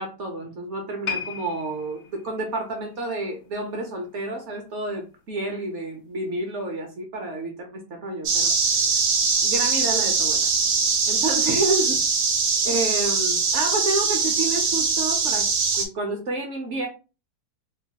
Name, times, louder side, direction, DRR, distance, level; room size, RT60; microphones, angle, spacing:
voice 1, 0.0-8.5 9.4-10.5 11.1-12.0 12.6-15.5 15.7-16.9, right 2 dB, 60° right, 2 dB, 0.8 m, -29 dB
sound 1, 1.0-4.3 4.6-4.9 5.6-5.7, left 6 dB, 75° left, 0.6 m, -37 dB
sound 2, 8.3-15.9, right 5 dB, 90° right, 1.2 m, -22 dB
3.0 x 2.2 x 2.8 m, 0.32 s
omnidirectional pair, 1.7 m